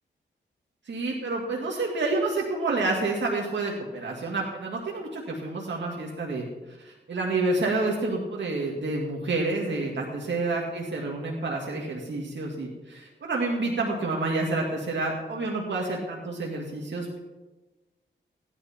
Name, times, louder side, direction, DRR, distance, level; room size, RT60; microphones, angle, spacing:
voice 1, 0.9-17.2, right 2 dB, 65° right, -2 dB, 2.3 m, -29 dB
16.0 x 11.0 x 4.4 m, 1.1 s
cardioid pair, 55°, 20 cm